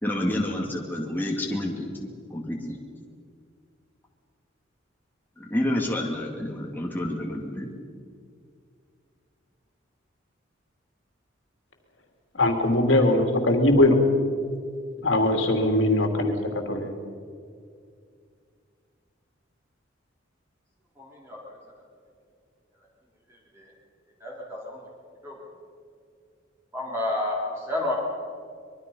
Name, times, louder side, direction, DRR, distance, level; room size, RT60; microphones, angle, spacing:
voice 1, 0.0-2.8 5.4-7.7, left 1 dB, 10° left, -1 dB, 2.4 m, -29 dB
voice 2, 12.3-14.0 15.0-16.3 16.7-16.9, left 1 dB, 75° left, 4 dB, 3.0 m, -21 dB
voice 3, 21.0-21.4 23.5-23.7 24.2-24.8 25.2-25.3 26.7-27.9, left 1 dB, 15° right, -4 dB, 4.4 m, -30 dB
24.0 x 22.5 x 5.6 m, 2.2 s
head